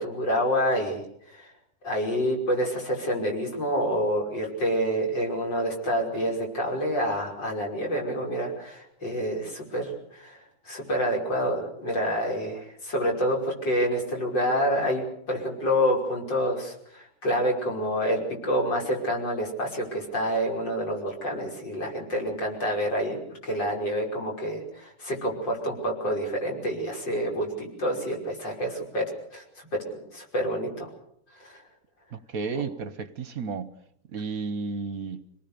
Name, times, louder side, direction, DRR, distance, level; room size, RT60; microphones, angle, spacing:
voice 1, 0.0-1.5 1.8-10.4 10.7-23.2 23.4-29.0 29.3-29.4 29.7-29.8 30.1-30.9 31.4-31.6 32.5-32.6, equal, 65° left, 6.3 m, -28 dB
voice 2, 32.1-33.7 34.1-35.2, right 5 dB, 50° right, 1.3 m, -32 dB
26.5 x 19.0 x 6.9 m
omnidirectional pair, 2.2 m